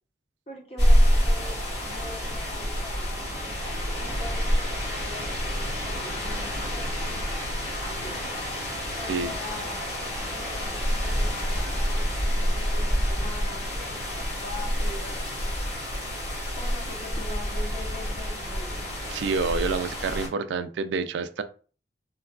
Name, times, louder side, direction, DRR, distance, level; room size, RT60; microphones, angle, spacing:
voice 1, 0.5-6.9 7.8-8.3 9.0-9.8 10.3-15.2 16.6-18.8, left 2 dB, 35° left, 0.8 m, -43 dB
sound 1, 0.8-20.3, equal, 65° left, 1.4 m, -27 dB
voice 2, 19.1-21.4, right 4 dB, 90° right, 0.3 m, -28 dB
3.6 x 2.3 x 2.3 m
head